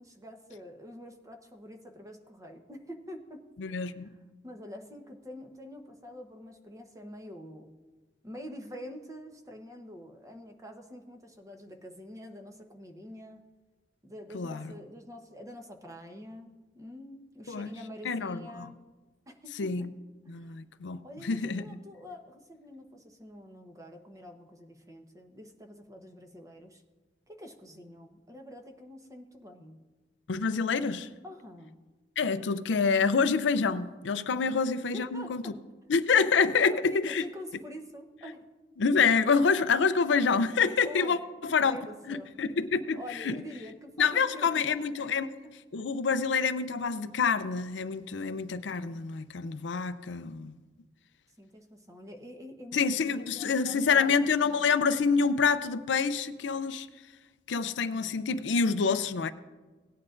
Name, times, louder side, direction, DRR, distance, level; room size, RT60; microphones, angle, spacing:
voice 1, 0.0-7.8 8.2-13.4 14.0-18.8 19.3-19.9 20.2-20.5 21.0-26.8 27.3-29.8 31.2-31.8 34.5-34.6 34.9-35.6 36.5-38.5 40.8-41.2 41.6-42.3 43.0-44.7 45.0-45.2 51.4-54.2 54.4-54.6 57.8-58.2, left 1 dB, 20° right, 4 dB, 1.0 m, -46 dB
voice 2, 3.6-4.1 14.3-14.7 17.5-17.7 18.0-18.7 19.6-19.9 20.3-21.6 30.3-31.1 32.2-35.4 35.9-37.2 38.8-41.8 42.1-43.4 44.0-45.3 45.7-50.5 52.7-56.9 57.5-59.3, left 5 dB, 70° left, 12 dB, 0.5 m, -27 dB
17.5 x 9.6 x 2.5 m, 1.3 s
head